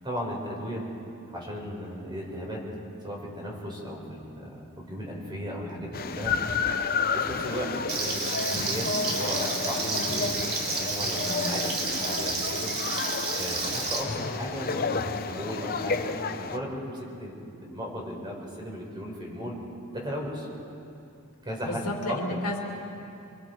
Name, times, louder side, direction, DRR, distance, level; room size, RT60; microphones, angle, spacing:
voice 1, 0.0-0.9 1.3-2.7 3.0-6.4 6.9-13.1 13.4-19.6 19.9-20.5 21.4-22.4, equal, 20° right, -2 dB, 4.5 m, -36 dB
sound 1, 5.9-16.6, left 5 dB, 45° left, 0.8 m, -31 dB
Frying (food), 7.9-14.0, right 3 dB, 65° right, 3.3 m, -30 dB
voice 2, 21.6-22.6, left 1 dB, 75° left, 0 dB, 2.7 m, -32 dB
25.5 x 24.5 x 4.6 m, 2.7 s
head